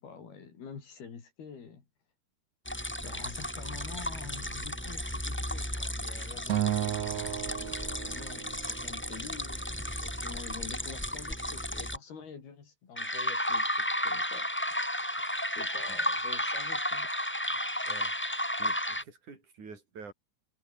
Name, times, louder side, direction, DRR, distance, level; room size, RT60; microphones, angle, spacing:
voice 1, 0.0-1.8 3.0-14.5 15.6-17.1, left 6 dB, 70° left, 6.3 m, -47 dB
sound 1, 2.7-12.0 13.0-19.0, equal, 5° left, 3.1 m, -33 dB
Acoustic guitar, 6.5-8.9, right 13 dB, 70° right, 1.7 m, -33 dB
voice 2, 15.1-15.4 15.9-16.0 17.9-18.1 18.6-20.1, right 5 dB, 50° right, 6.7 m, -48 dB
omnidirectional pair, 4.6 m